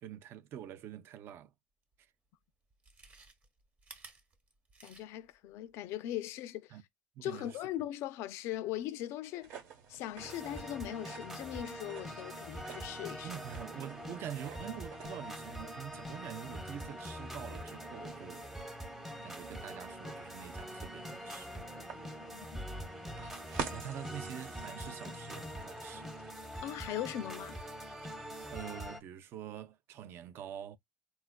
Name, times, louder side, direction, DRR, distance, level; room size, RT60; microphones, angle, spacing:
voice 1, 0.0-1.5 2.0-2.1 6.7-6.8 7.2-7.6 13.2-18.5 19.2-21.5 23.7-26.1 28.5-30.8, right 10 dB, 55° right, 0.4 m, -46 dB
Chewing mastication, 1.9-2.0 2.7-5.3 5.7-5.8, right 3 dB, 30° right, 1.0 m, -55 dB
voice 2, 4.8-6.8 7.2-9.5 9.9-13.4 22.2-22.7 26.6-27.6, left 13 dB, 70° left, 0.3 m, -40 dB
sound 1, 9.4-28.8, right 6 dB, 70° right, 1.0 m, -50 dB
sound 2, 10.2-29.0, equal, 5° right, 0.7 m, -44 dB
4.1 x 2.3 x 2.2 m
cardioid pair, 120°, 5 cm